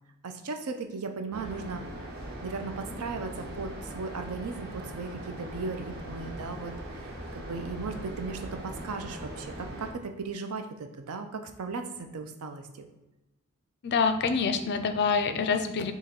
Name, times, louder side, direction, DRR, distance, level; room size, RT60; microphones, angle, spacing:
voice 1, 0.2-1.8 2.4-12.9, right 4 dB, 80° right, 6 dB, 0.5 m, -37 dB
sound 1, 1.3-9.9, right 1 dB, 45° right, 1.1 m, -40 dB
voice 2, 13.8-15.9, left 5 dB, 50° left, 9 dB, 0.4 m, -26 dB
3.7 x 3.0 x 4.3 m, 0.97 s
head